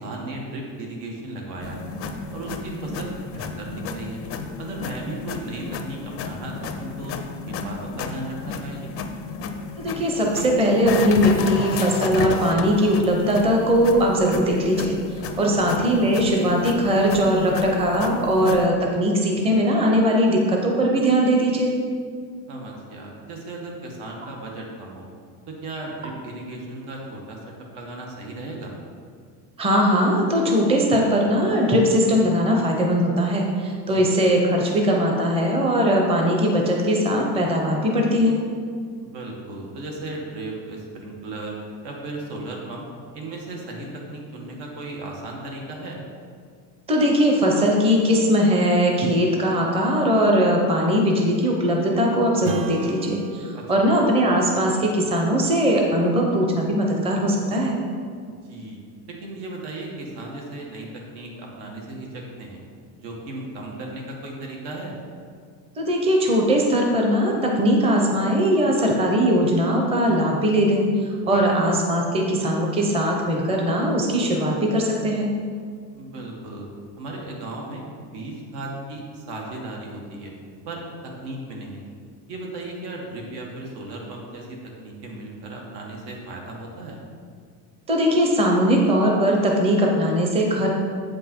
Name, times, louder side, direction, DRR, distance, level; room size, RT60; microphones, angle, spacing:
voice 1, 0.0-1.9 2.3-4.2 4.6-7.2 7.5-8.9 22.5-25.1 25.5-27.4 27.7-28.7 33.9-34.0 39.0-41.6 41.8-42.9 43.1-46.0 53.5-53.6 58.2-58.8 59.1-62.6 62.9-64.9 75.9-76.7 77.0-77.9 78.1-80.3 80.6-81.8 82.3-87.0, right 2 dB, 85° right, -1 dB, 1.7 m, -36 dB
sound 1, 1.6-18.7, left 5 dB, 40° left, 0.4 m, -32 dB
voice 2, 9.8-21.7 29.6-38.4 46.9-57.8 65.8-70.8 71.3-75.3 87.9-90.7, equal, 15° right, 0 dB, 0.6 m, -20 dB
Strum, 52.4-57.4, right 6 dB, 65° right, 0.6 m, -38 dB
7.8 x 5.4 x 4.4 m, 2.1 s
cardioid pair, 180°, 40 cm